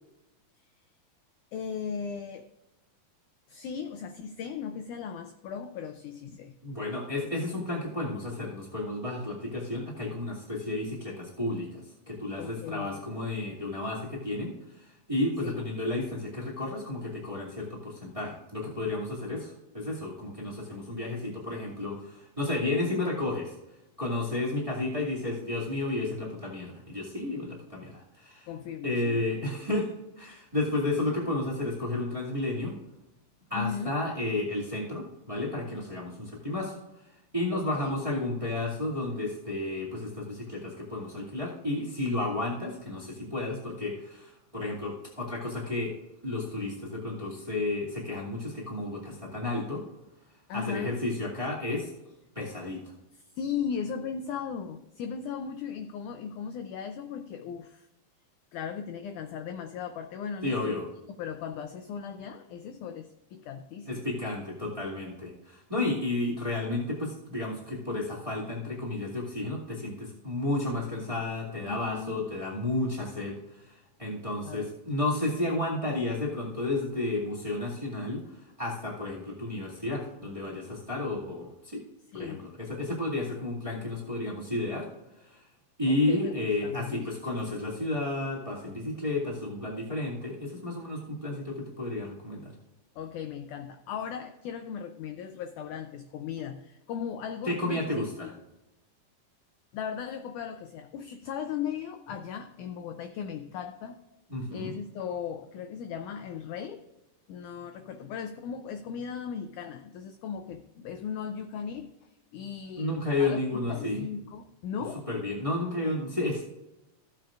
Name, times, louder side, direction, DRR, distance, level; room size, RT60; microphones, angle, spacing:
voice 1, 1.5-2.5 3.5-6.5 12.4-13.0 15.4-15.6 28.5-29.2 33.5-33.9 37.5-38.0 50.5-51.0 53.4-57.9 58.5-60.7 61.2-64.1 71.6-72.2 74.4-74.7 82.1-82.4 85.9-87.1 92.9-98.3 99.7-104.0 104.5-106.9 107.3-113.4 113.7-115.1, left 7 dB, 85° left, 7 dB, 1.7 m, -37 dB
voice 2, 6.6-23.5 24.0-28.5 28.8-32.8 33.5-36.8 37.3-45.9 46.2-49.8 50.5-51.9 52.3-52.8 60.4-60.9 63.8-73.7 74.0-78.2 78.6-81.8 82.1-84.9 85.2-85.4 85.8-92.5 97.4-98.3 104.3-104.7 112.8-114.1 115.1-116.4, left 2 dB, 15° right, -5 dB, 1.5 m, -32 dB
15.5 x 7.6 x 2.5 m, 0.95 s
omnidirectional pair, 4.2 m